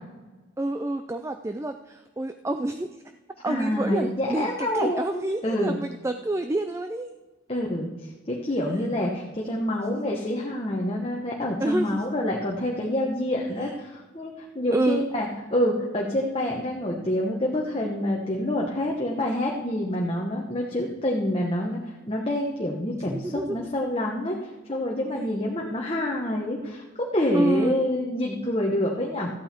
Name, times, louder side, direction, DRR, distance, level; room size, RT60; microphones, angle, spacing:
voice 1, 0.6-2.9 3.4-7.1 9.9-10.1 11.6-12.1 13.6-13.7 14.7-15.0 23.1-23.7 27.3-27.8, right 1 dB, 15° right, 8 dB, 0.3 m, -28 dB
voice 2, 3.5-5.8 7.5-7.9 8.3-29.3, left 1 dB, 30° left, -2 dB, 1.1 m, -27 dB
13.5 x 8.7 x 4.4 m, 1.2 s
head